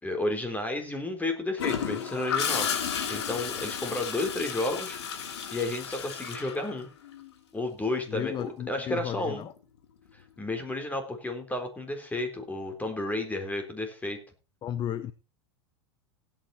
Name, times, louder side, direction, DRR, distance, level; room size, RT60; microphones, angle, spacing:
voice 1, 0.0-5.0 5.5-6.9 7.5-9.4 10.4-14.2, left 2 dB, 10° left, 6 dB, 4.1 m, -32 dB
Gurgling / Toilet flush, 1.6-7.3 9.3-9.6, left 7 dB, 80° left, 3.0 m, -33 dB
voice 2, 8.1-9.5 14.6-15.1, left 10 dB, 35° left, 15 dB, 0.9 m, -34 dB
17.0 x 9.0 x 4.3 m, 0.33 s
hypercardioid pair, 105°, 14 cm